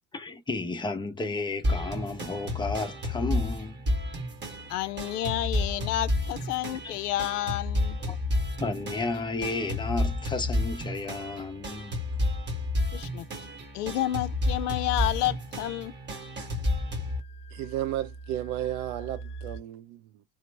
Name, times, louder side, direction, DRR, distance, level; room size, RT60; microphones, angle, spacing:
voice 1, 0.1-3.8 6.8-6.9 8.0-8.2 8.6-12.0, left 3 dB, 10° left, 0.5 m, -32 dB
sound 1, 1.6-17.2, left 1 dB, 20° right, 1.1 m, -31 dB
voice 2, 4.7-8.0 12.9-13.3 13.7-15.9, left 13 dB, 70° left, 0.5 m, -30 dB
sound 2, 15.3-19.6, right 3 dB, 40° left, 1.0 m, -44 dB
voice 3, 17.5-20.2, right 13 dB, 55° right, 0.6 m, -33 dB
2.9 x 2.0 x 3.2 m
figure-of-eight pair, 65°, 49 cm